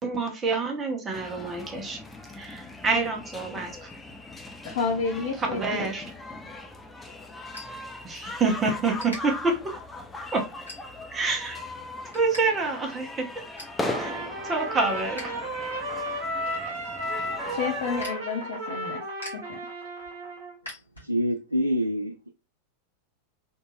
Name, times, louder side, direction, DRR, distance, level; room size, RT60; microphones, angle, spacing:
voice 1, 0.0-2.0 2.3-3.9 5.5-6.1 8.0-9.8 10.3-10.5 11.1-11.6 12.1-13.3 14.0-14.1 14.5-15.2, right 3 dB, 20° right, 1.0 m, -27 dB
sound 1, 1.1-18.1, left 2 dB, 10° left, 0.5 m, -39 dB
voice 2, 4.6-5.9 17.5-19.0 19.3-19.6, left 5 dB, 55° left, 0.6 m, -30 dB
sound 2, 6.5-8.5 8.8-9.2 9.8-10.0 10.5-11.2 11.6-12.4 12.7-12.8 13.2-13.8 14.3-15.3 15.6-21.4, left 1 dB, 80° left, 1.6 m, -45 dB
Trumpet, 13.8-20.6, right 1 dB, 55° right, 1.1 m, -34 dB
voice 3, 21.0-22.3, equal, 85° right, 0.4 m, -26 dB
3.6 x 2.7 x 2.6 m
figure-of-eight pair, 90°, 0 cm